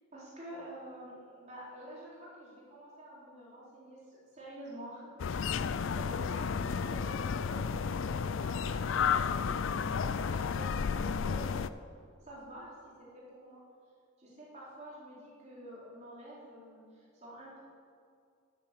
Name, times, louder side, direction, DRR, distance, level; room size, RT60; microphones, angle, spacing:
voice 1, 0.1-5.1 5.9-11.5 12.2-13.6 14.2-17.6, right 1 dB, 30° right, -7 dB, 4.0 m, -48 dB
sound 1, 5.2-11.7, left 6 dB, 60° left, 0.4 m, -32 dB
12.0 x 8.9 x 7.6 m, 2.2 s
head